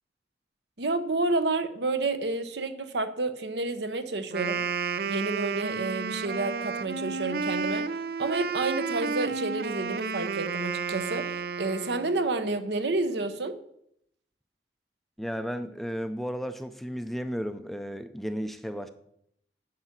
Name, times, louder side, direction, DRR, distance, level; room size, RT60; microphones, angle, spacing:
voice 1, 0.8-4.6 5.0-7.8 8.2-11.3 11.6-13.6, right 2 dB, 75° right, 10 dB, 1.0 m, -29 dB
Wind instrument woodwind instrument, 4.2-12.3, right 5 dB, 55° right, 0.4 m, -32 dB
voice 2, 15.2-18.9, equal, ahead, 9 dB, 0.5 m, -34 dB
9.8 x 5.9 x 7.4 m, 0.73 s
head